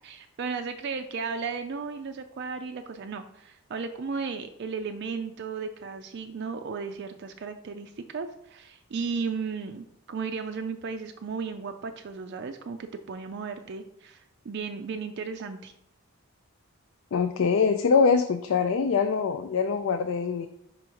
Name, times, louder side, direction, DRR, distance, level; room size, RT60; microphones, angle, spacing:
voice 1, 0.0-15.7, right 5 dB, 50° right, 7 dB, 0.4 m, -35 dB
voice 2, 17.1-20.5, left 5 dB, 60° left, 9 dB, 0.3 m, -23 dB
5.1 x 4.8 x 4.6 m, 0.79 s
head